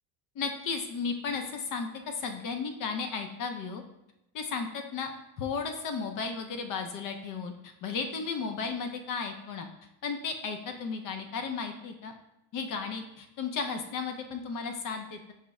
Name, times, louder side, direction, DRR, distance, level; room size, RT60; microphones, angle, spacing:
voice 1, 0.4-3.8 4.3-5.1 5.4-7.5 7.8-9.7 10.0-12.1 12.5-15.3, left 5 dB, 50° left, 5 dB, 0.6 m, -34 dB
5.5 x 2.0 x 3.5 m, 0.89 s
cardioid pair, 125°, 41 cm